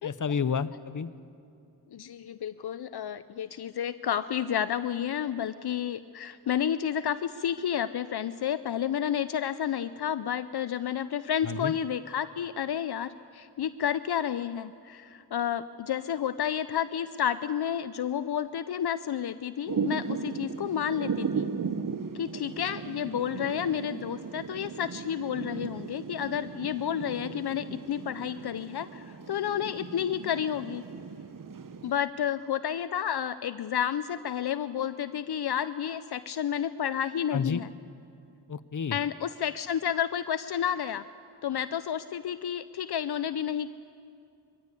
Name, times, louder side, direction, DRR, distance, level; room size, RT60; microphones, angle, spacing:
voice 1, 0.0-1.1 11.4-11.7 37.3-37.6 38.5-39.0, left 6 dB, 50° left, 13 dB, 0.8 m, -30 dB
voice 2, 1.9-21.5 22.1-30.8 31.8-37.7 38.9-41.0 41.4-43.7, left 9 dB, 75° left, 13 dB, 0.6 m, -31 dB
Thunder / Rain, 19.7-31.9, right 6 dB, 55° right, 0.9 m, -36 dB
23.0 x 15.0 x 8.3 m, 2.5 s
cardioid pair, 55°, 39 cm